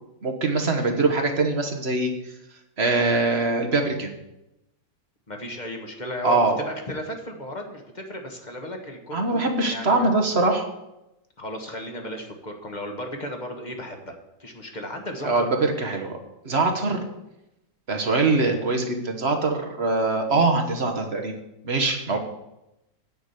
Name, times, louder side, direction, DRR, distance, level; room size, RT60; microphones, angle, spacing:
voice 1, 0.2-2.3 2.8-4.1 6.2-6.6 9.1-10.7 15.2-16.2 16.4-17.0 17.9-21.3 21.6-22.2, right 3 dB, 40° right, 3 dB, 1.2 m, -23 dB
voice 2, 5.3-6.4 6.7-10.2 11.4-14.1 14.4-15.5, equal, 25° left, 3 dB, 1.2 m, -35 dB
9.6 x 6.0 x 8.2 m, 0.91 s
omnidirectional pair, 2.1 m